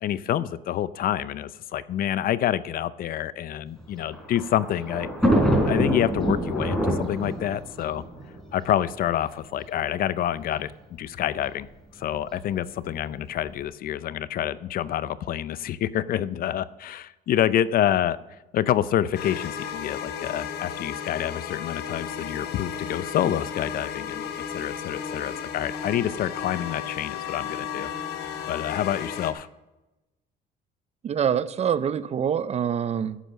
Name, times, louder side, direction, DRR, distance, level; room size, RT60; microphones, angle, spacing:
voice 1, 0.0-5.1 5.6-8.0 8.5-11.7 12.0-18.2 18.5-24.3 24.5-27.9 28.5-29.5, left 11 dB, 60° left, 17 dB, 0.6 m, -27 dB
Thunder, 3.8-9.1 9.9-10.0 10.3-10.4 11.4-11.7, equal, ahead, 4.1 m, -25 dB
sound 1, 19.1-29.3, left 7 dB, 75° left, 1.4 m, -34 dB
voice 2, 31.0-33.2, right 8 dB, 40° right, 16 dB, 0.6 m, -25 dB
11.5 x 7.8 x 6.4 m, 1.0 s
cardioid pair, 110°, 17 cm